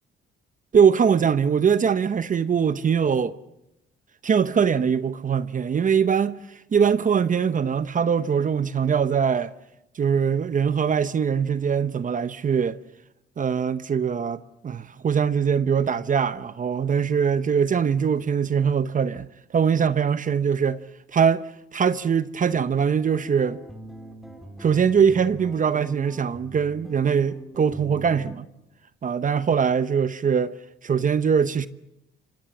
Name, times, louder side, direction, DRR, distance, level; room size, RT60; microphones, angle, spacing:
voice 1, 0.7-3.3 4.2-9.5 9.9-12.8 13.4-20.8 21.1-23.6 24.6-28.5 29.0-30.6 30.8-31.7, right 7 dB, 40° right, 0.9 m, -22 dB
sound 1, 23.0-28.4, equal, ahead, 4.4 m, -42 dB
27.0 x 24.0 x 7.2 m
cardioid pair, 90°, 20 cm